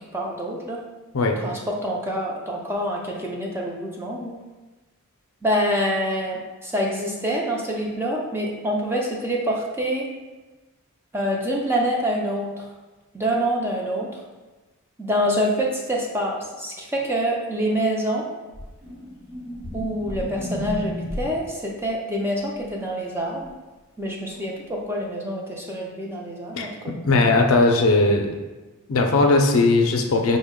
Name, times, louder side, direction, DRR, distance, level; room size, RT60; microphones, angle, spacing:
voice 1, 0.1-0.8 1.4-4.3 5.4-10.1 11.1-12.7 13.1-14.2 15.0-18.3 19.7-23.5 24.0-26.9, equal, 10° right, -2 dB, 0.4 m, -26 dB
sound 1, 18.5-21.5 24.3-24.4, left 1 dB, 45° right, 1.0 m, -32 dB
voice 2, 27.0-28.3 28.9-30.4, left 3 dB, 65° left, 3 dB, 0.5 m, -18 dB
5.2 x 2.1 x 3.6 m, 1.2 s
head